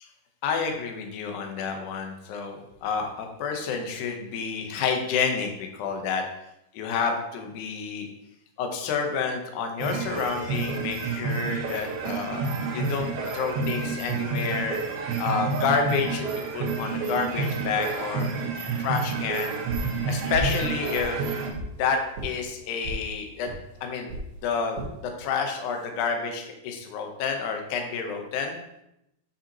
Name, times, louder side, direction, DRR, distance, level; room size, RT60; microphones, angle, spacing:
voice 1, 0.4-6.2 6.7-8.1 8.6-14.8 15.2-18.3 18.8-19.6 20.1-21.2 21.8-23.5 23.8-24.1 24.4-24.8 25.0-28.6, left 5 dB, 70° left, 4 dB, 2.0 m, -29 dB
sound 1, 9.8-21.5, right 4 dB, 90° right, 3.1 m, -29 dB
sound 2, 19.7-20.0 20.3-20.6 20.9-21.7 22.1-22.3 22.8-23.0 23.5-23.6 24.1-24.3 24.7-24.9 25.5-25.9, right 1 dB, 60° right, 2.6 m, -33 dB
8.0 x 5.5 x 2.9 m, 0.84 s
omnidirectional pair, 4.4 m